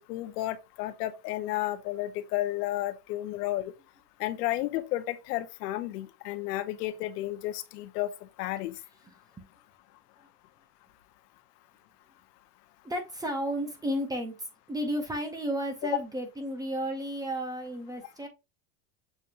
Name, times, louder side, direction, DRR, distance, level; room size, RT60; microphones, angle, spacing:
voice 1, 0.0-3.7 4.2-8.1 8.4-8.7, left 15 dB, 90° left, 0.7 m, -32 dB
voice 2, 9.0-9.5 12.8-18.3, equal, 10° right, 0.5 m, -33 dB
6.8 x 2.8 x 2.4 m
supercardioid pair, 150°, 46 cm